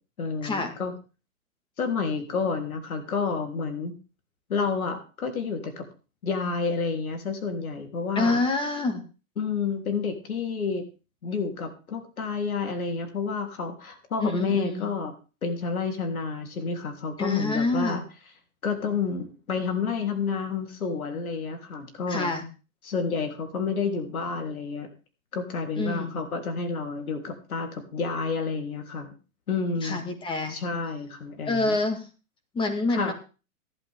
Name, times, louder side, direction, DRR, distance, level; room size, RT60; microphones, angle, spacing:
voice 1, 0.2-0.9 1.8-3.9 4.5-5.8 6.2-8.4 9.4-10.8 11.2-15.1 15.4-18.0 18.6-22.3 22.8-24.9 25.3-29.1 29.5-30.0 30.5-31.8 32.9-33.1, left 5 dB, 85° left, 4 dB, 3.6 m, -29 dB
voice 2, 8.2-9.0 14.2-14.9 17.2-18.0 22.1-22.5 25.8-26.2 29.8-30.6 31.5-32.1 32.5-33.1, left 2 dB, 10° left, 7 dB, 1.8 m, -27 dB
15.5 x 11.0 x 3.7 m, 0.33 s
hypercardioid pair, 140°, 42 cm